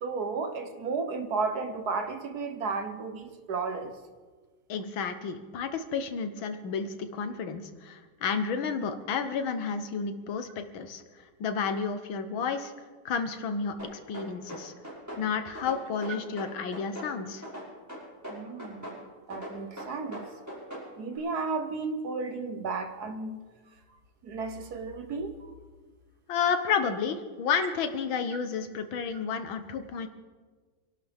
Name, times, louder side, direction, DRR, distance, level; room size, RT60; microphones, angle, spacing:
voice 1, 0.0-3.9 18.3-18.9 19.3-20.2 21.0-23.4 24.2-25.5, right 4 dB, 55° right, 7 dB, 1.4 m, -33 dB
voice 2, 4.7-11.0 11.4-12.7 13.1-14.7 15.2-17.5 26.3-30.1, left 6 dB, 70° left, 8 dB, 1.8 m, -31 dB
sound 1, 13.8-15.2 15.5-17.1 17.4-19.0 19.3-20.9, right 1 dB, 5° right, 5.5 m, -40 dB
26.5 x 12.0 x 3.5 m, 1.4 s
omnidirectional pair, 2.3 m